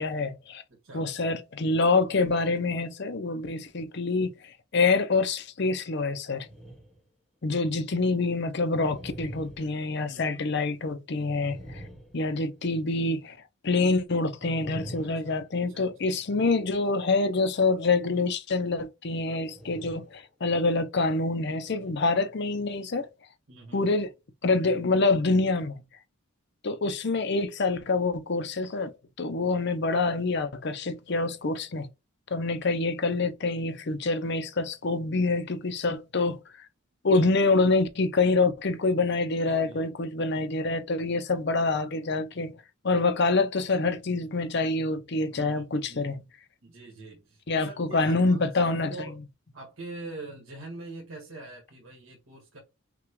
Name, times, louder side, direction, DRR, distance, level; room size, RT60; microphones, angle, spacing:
voice 1, 0.0-0.6 0.9-6.5 7.4-11.8 12.1-13.4 13.6-23.1 23.7-24.1 24.4-25.7 26.6-31.9 32.3-36.4 37.0-42.5 42.8-46.2 47.5-49.1, left 3 dB, 55° left, 0.6 m, -26 dB
voice 2, 0.7-1.1 10.1-10.4 15.0-15.9 23.5-23.9 39.4-39.9 45.3-46.2 46.6-49.2 49.5-52.6, right 2 dB, 75° right, 1.9 m, -44 dB
sound 1, 6.4-7.1 7.6-7.7 8.7-10.5 11.1-12.9 14.4-16.1 19.4-20.2 20.7-20.8 21.6-21.9, right 1 dB, ahead, 1.0 m, -45 dB
5.9 x 2.4 x 3.1 m
head